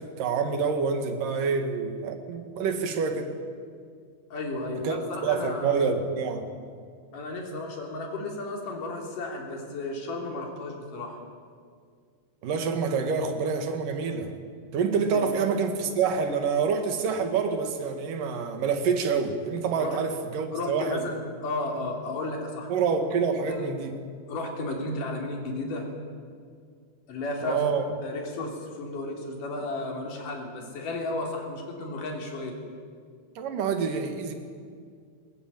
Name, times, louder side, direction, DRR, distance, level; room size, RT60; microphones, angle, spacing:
voice 1, 0.0-3.3 4.8-5.0 5.2-6.5 12.4-14.3 14.7-21.1 22.7-24.0 27.4-27.8 33.4-34.3, right 5 dB, 75° right, 7 dB, 3.4 m, -27 dB
voice 2, 4.3-5.9 7.1-11.2 15.1-15.3 19.8-20.0 20.5-22.7 23.5-23.7 24.3-25.9 27.1-27.7 28.0-32.6, left 2 dB, 75° left, 1 dB, 4.9 m, -33 dB
20.5 x 20.5 x 9.0 m, 2.1 s
omnidirectional pair, 3.8 m